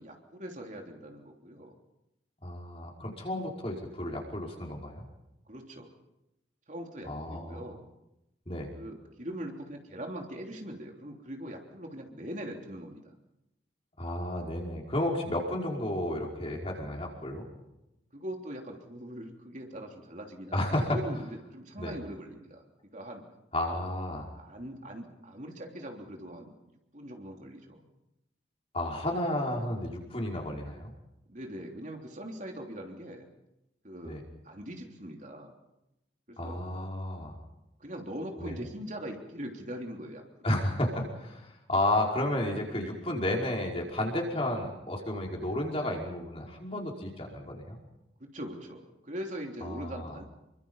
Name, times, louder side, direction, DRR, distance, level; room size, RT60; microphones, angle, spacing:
voice 1, 0.0-1.7 5.5-5.9 6.7-7.8 8.7-13.0 18.1-22.6 22.9-23.2 24.3-27.8 31.3-33.3 33.8-34.2 34.4-35.6 36.3-36.6 37.8-40.5 48.2-50.2, equal, 40° right, 2 dB, 3.3 m, -41 dB
voice 2, 2.4-5.0 7.1-7.6 8.5-8.7 14.0-17.5 20.5-21.0 21.8-22.0 23.5-24.3 28.7-30.9 34.0-34.2 36.4-37.4 38.4-38.6 40.4-47.8 49.6-50.2, left 1 dB, 30° left, -1 dB, 5.1 m, -32 dB
28.0 x 24.0 x 5.6 m, 0.89 s
head